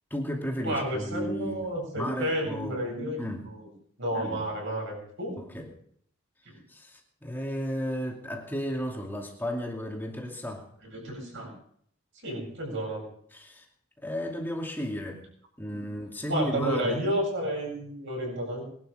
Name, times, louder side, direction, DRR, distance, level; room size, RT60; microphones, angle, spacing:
voice 1, 0.1-1.6 2.0-2.8 3.2-3.5 4.2-4.4 5.4-5.7 6.7-10.7 13.3-13.6 14.0-15.2 15.6-17.0, equal, 10° left, 0 dB, 2.6 m, -33 dB
voice 2, 0.6-3.7 4.0-5.3 6.4-6.6 10.8-11.5 12.1-13.0 15.7-15.9 16.3-18.6, right 1 dB, 55° right, 0 dB, 7.8 m, -31 dB
21.5 x 12.0 x 5.1 m, 0.65 s
head